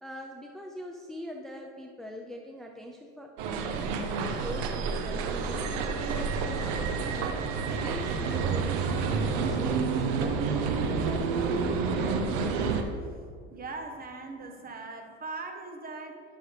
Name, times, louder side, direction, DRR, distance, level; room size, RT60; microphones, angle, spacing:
voice 1, 0.0-3.3 4.3-12.5, equal, ahead, 1 dB, 0.6 m, -43 dB
sound 1, 3.4-12.8, right 5 dB, 85° right, 0.8 m, -29 dB
voice 2, 13.5-16.2, right 3 dB, 30° right, 5 dB, 1.2 m, -40 dB
12.0 x 6.5 x 3.3 m, 2.1 s
supercardioid pair, 100°, 29 cm